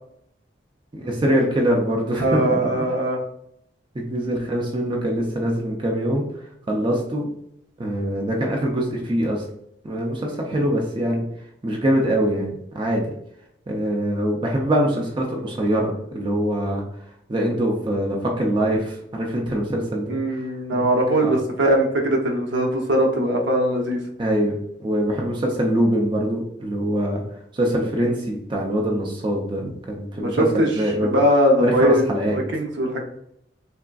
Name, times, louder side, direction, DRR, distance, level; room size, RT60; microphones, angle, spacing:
voice 1, 0.9-2.9 3.9-6.2 6.7-7.3 7.8-9.5 9.8-11.3 11.6-13.0 13.7-16.8 17.3-20.2 20.7-20.9 21.2-21.3 24.2-27.2 27.5-31.1 31.6-32.4, right 1 dB, 25° right, -1 dB, 0.4 m, -23 dB
voice 2, 2.2-3.2 20.1-24.0 30.2-30.7 31.0-33.0, right 1 dB, 70° right, 1 dB, 0.7 m, -20 dB
3.5 x 2.4 x 2.2 m, 0.73 s
head